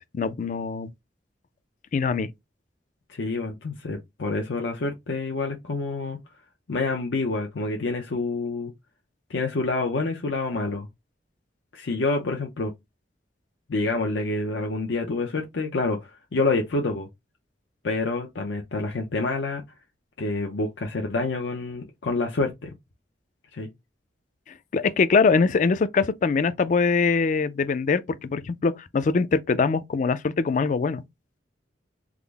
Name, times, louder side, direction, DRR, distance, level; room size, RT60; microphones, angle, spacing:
voice 1, 0.1-0.9 1.9-2.3 24.7-31.0, left 4 dB, 45° left, 0.3 m, -23 dB
voice 2, 3.1-6.2 6.7-8.7 9.3-10.9 11.7-12.7 13.7-16.0 16.3-17.1 17.8-19.6 20.2-22.7 23.5-23.7, left 3 dB, 90° left, 0.6 m, -27 dB
3.6 x 2.0 x 3.3 m
head